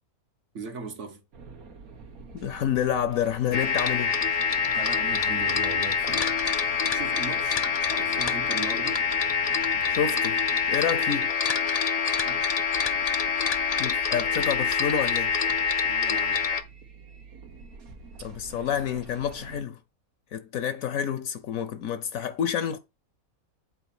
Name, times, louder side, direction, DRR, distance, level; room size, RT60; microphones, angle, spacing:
voice 1, 0.5-1.2 4.7-6.3 6.9-9.1 12.2-12.5 15.9-16.5, right 4 dB, 55° right, 1.7 m, -38 dB
sound 1, 1.3-19.6, right 4 dB, 85° right, 1.8 m, -47 dB
voice 2, 2.3-4.2 9.8-10.4 10.7-11.3 13.8-15.3 18.2-19.8 20.3-22.8, left 8 dB, 75° left, 1.2 m, -28 dB
sound 2, 3.5-16.6, left 6 dB, 40° left, 0.6 m, -26 dB
8.3 x 4.3 x 6.0 m
omnidirectional pair, 1.5 m